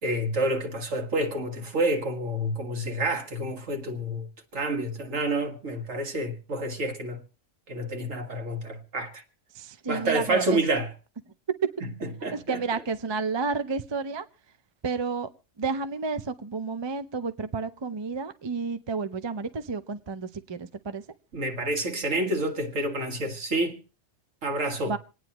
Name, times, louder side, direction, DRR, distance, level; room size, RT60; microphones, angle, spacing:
voice 1, 0.0-4.3 4.5-7.2 7.7-9.2 9.9-10.9 11.8-12.6 21.3-23.8 24.4-24.9, right 1 dB, 75° right, 2.1 m, -28 dB
voice 2, 9.5-10.6 12.3-14.3 14.8-15.3 15.6-21.0 24.9-25.0, right 4 dB, 30° right, 0.5 m, -31 dB
27.0 x 9.5 x 3.0 m
omnidirectional pair, 1.3 m